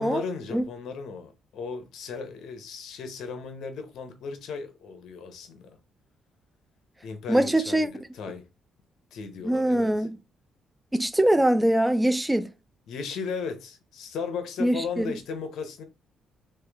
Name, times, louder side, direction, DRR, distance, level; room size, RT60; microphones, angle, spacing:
voice 1, 0.0-5.8 7.0-8.5 9.1-10.1 12.9-15.8, left 5 dB, 75° left, 1.0 m, -36 dB
voice 2, 7.3-7.9 9.4-10.2 10.9-12.5 14.6-15.1, right 1 dB, 10° right, 0.5 m, -23 dB
3.5 x 3.4 x 3.5 m
cardioid pair, 90°, 0 cm